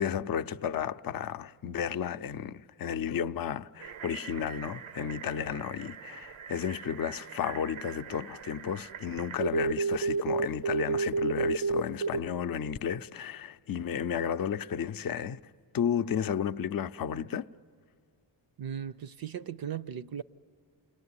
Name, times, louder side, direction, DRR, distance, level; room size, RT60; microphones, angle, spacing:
voice 1, 0.0-15.4 15.7-17.5, left 8 dB, 50° left, 0.5 m, -33 dB
sound 1, 3.8-12.2, right 4 dB, 80° right, 0.7 m, -34 dB
voice 2, 18.6-20.2, right 8 dB, 50° right, 0.5 m, -37 dB
29.0 x 19.5 x 9.6 m
cardioid pair, 75°, 47 cm